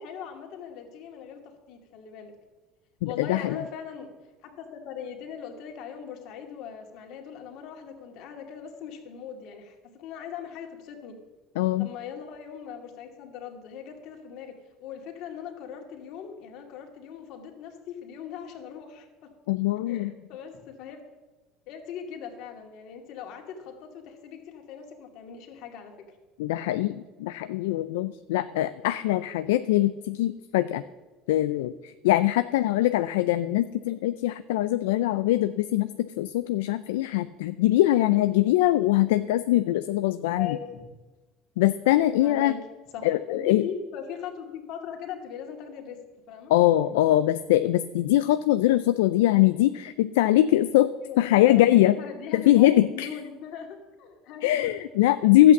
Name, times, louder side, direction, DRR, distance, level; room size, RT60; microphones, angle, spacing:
voice 1, 0.0-2.3 3.0-4.1 4.4-11.2 11.8-14.5 14.8-19.3 19.9-21.1 21.7-26.1 32.6-32.9 40.3-40.8 42.2-42.6 42.9-46.0 46.3-46.5 51.0-51.7 52.0-54.8, left 7 dB, 70° left, 3 dB, 2.3 m, -40 dB
voice 2, 3.0-3.6 11.6-11.9 19.5-20.1 26.4-30.8 31.3-40.6 41.6-42.5 43.0-43.6 46.5-50.9 51.2-52.0 52.3-53.1 54.4-55.5, left 14 dB, 85° left, 12 dB, 0.4 m, -22 dB
12.0 x 8.3 x 7.2 m, 1.2 s
supercardioid pair, 85°, 0 cm